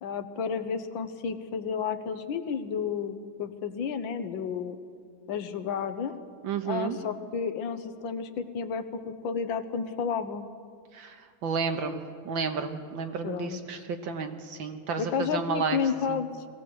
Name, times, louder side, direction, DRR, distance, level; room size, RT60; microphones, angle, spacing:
voice 1, 0.0-4.8 5.3-6.1 6.6-10.4 13.2-13.6 15.0-16.3, left 6 dB, 75° left, 9 dB, 1.7 m, -31 dB
voice 2, 6.4-7.0 10.9-15.8 16.1-16.2, right 5 dB, 75° right, 6 dB, 2.0 m, -32 dB
21.5 x 16.5 x 7.7 m, 2.1 s
omnidirectional pair, 2.2 m